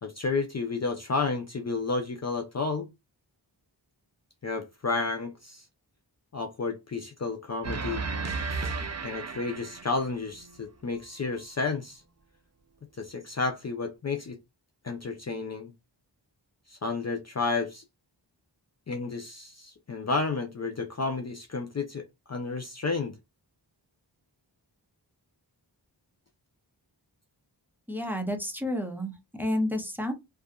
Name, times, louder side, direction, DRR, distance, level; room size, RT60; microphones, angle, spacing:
voice 1, 0.0-2.9 4.4-5.6 6.3-8.0 9.0-12.0 13.0-14.4 14.8-15.7 16.7-17.8 18.9-23.2, left 4 dB, 40° left, 0.4 m, -31 dB
sound 1, 7.6-10.6, right 4 dB, 40° right, 0.5 m, -34 dB
voice 2, 27.9-30.1, left 1 dB, 5° right, 0.7 m, -30 dB
2.7 x 2.3 x 2.3 m
wide cardioid pair, 60°, 44 cm